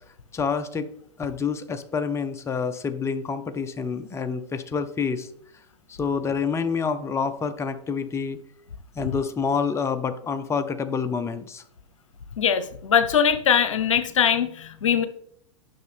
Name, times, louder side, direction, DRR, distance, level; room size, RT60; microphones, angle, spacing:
voice 1, 0.3-0.9 1.2-5.3 5.9-8.4 8.9-11.6, left 5 dB, 15° left, 10 dB, 0.8 m, -27 dB
voice 2, 12.4-15.1, left 8 dB, 80° left, 12 dB, 0.8 m, -21 dB
10.5 x 6.1 x 3.5 m, 0.67 s
hypercardioid pair, 100°, 16 cm